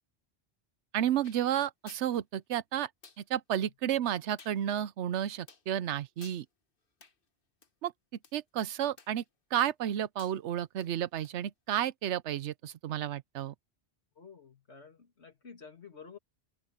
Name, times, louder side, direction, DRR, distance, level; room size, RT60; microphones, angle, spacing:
voice 1, 0.9-2.9 3.2-6.4 7.8-7.9 8.3-9.2 9.5-13.5, right 10 dB, 90° right, 1.0 m, -32 dB
sound 1, 1.2-1.4 1.9-2.1 3.0-3.2 4.4-4.6 5.5-5.7 6.2-6.4 7.0-7.2 7.6-7.7 8.2-8.3 9.0-9.3 9.6-9.9 10.2-10.4 10.8-10.9 11.2-11.3, left 4 dB, 55° left, 1.5 m, -54 dB
voice 2, 14.2-16.2, left 5 dB, 75° left, 2.6 m, -51 dB
omnidirectional pair, 1.1 m